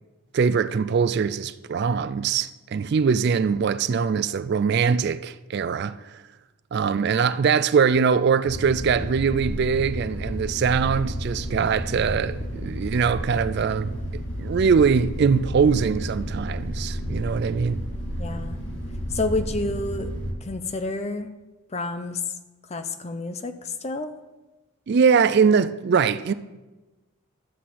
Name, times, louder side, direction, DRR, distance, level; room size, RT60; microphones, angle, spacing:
voice 1, 0.3-6.2 6.7-17.8 24.9-26.3, right 6 dB, 50° right, 0.3 m, -22 dB
sound 1, 8.5-20.3, equal, 55° left, 1.7 m, -31 dB
voice 2, 18.2-18.6 19.1-20.1 20.4-21.3 21.7-22.2 22.7-24.1, left 2 dB, 30° left, 0.5 m, -29 dB
12.5 x 4.2 x 7.5 m
head